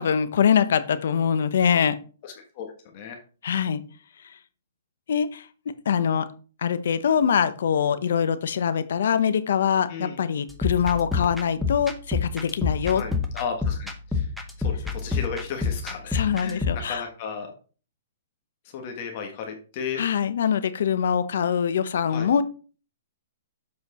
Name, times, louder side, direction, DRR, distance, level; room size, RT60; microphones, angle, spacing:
voice 1, 0.0-2.0 3.4-3.8 5.1-5.5 5.8-6.3 6.6-13.0 16.1-17.0 20.0-22.4, left 7 dB, 70° left, 12 dB, 0.8 m, -23 dB
voice 2, 2.2-2.7 2.9-3.2 9.9-10.2 12.9-14.3 14.6-17.5 18.7-20.0 22.1-22.3, left 6 dB, 40° left, 3 dB, 1.5 m, -35 dB
sound 1, 10.5-16.8, left 5 dB, ahead, 0.8 m, -28 dB
7.6 x 4.5 x 4.2 m, 0.37 s
hypercardioid pair, 150°, 0 cm